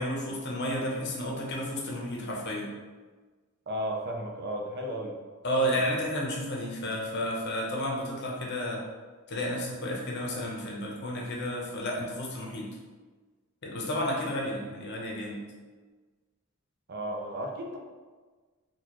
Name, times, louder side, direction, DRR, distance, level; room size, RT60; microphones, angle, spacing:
voice 1, 0.0-2.7 5.4-8.8 9.3-12.8 13.6-15.4, equal, 55° left, -2 dB, 0.8 m, -32 dB
voice 2, 3.7-5.2 5.7-5.8 16.9-17.8, equal, 50° right, 1 dB, 0.6 m, -34 dB
4.2 x 2.4 x 3.0 m, 1.4 s
head